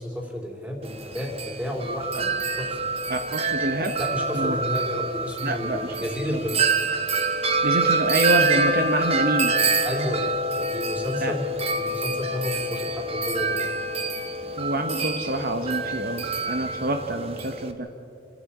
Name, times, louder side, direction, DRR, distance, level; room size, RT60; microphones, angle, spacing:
voice 1, 0.0-2.3 2.6-2.8 4.0-6.7 9.8-13.7, equal, 10° right, 1 dB, 3.5 m, -31 dB
Wind chime, 0.8-17.7, right 3 dB, 35° right, 1.2 m, -26 dB
voice 2, 3.1-4.0 4.3-4.6 5.4-6.4 7.6-9.5 11.2-11.3 14.6-17.9, right 1 dB, 55° right, 6 dB, 1.1 m, -27 dB
28.5 x 13.0 x 8.7 m, 2.7 s
head